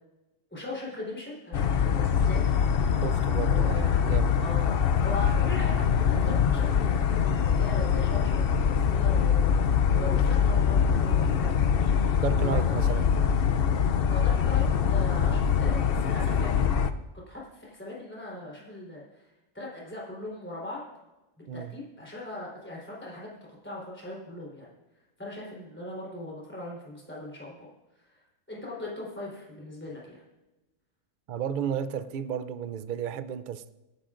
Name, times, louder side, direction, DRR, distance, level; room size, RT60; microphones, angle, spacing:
voice 1, 0.5-3.0 3.3-4.0 4.4-12.0 12.4-12.6 13.1-13.2 14.1-16.7 17.3-19.3 19.5-20.8 21.5-23.3 23.6-24.7 25.2-27.7 28.0-28.2 28.5-30.2, left 1 dB, 10° left, -5 dB, 3.8 m, -40 dB
sound 1, 1.5-16.9, left 7 dB, 55° left, 0.7 m, -24 dB
voice 2, 3.0-4.3 12.2-13.1 21.5-21.8 31.3-33.7, right 8 dB, 60° right, 13 dB, 0.5 m, -33 dB
28.0 x 10.5 x 2.5 m, 1.1 s
omnidirectional pair, 1.4 m